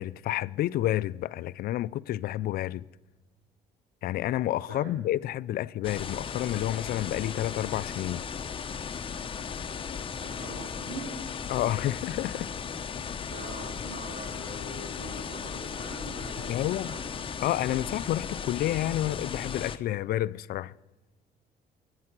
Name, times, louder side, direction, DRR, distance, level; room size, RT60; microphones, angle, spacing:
voice 1, 0.0-2.8 4.0-8.2 11.5-12.5 16.5-16.9 17.4-20.7, left 14 dB, 65° left, 0.4 m, -30 dB
sound 1, 5.8-19.8, left 6 dB, 30° left, 0.8 m, -36 dB
voice 2, 10.2-11.2 13.3-17.0, right 2 dB, 70° right, 4.2 m, -43 dB
20.5 x 8.9 x 6.0 m
cardioid pair, 110°, 17 cm